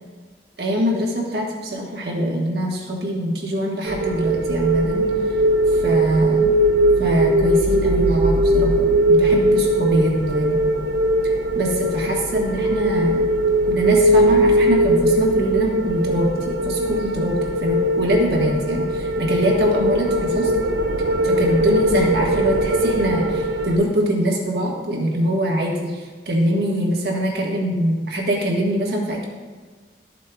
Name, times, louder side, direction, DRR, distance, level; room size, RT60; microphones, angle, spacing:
voice 1, 0.6-5.4 5.7-6.6 7.0-10.6 11.5-13.3 13.6-20.5 21.2-29.2, equal, 65° right, -1 dB, 1.3 m, -23 dB
sound 1, 3.8-23.8, right 1 dB, 80° right, 0.5 m, -20 dB
12.5 x 7.4 x 2.2 m, 1.5 s
head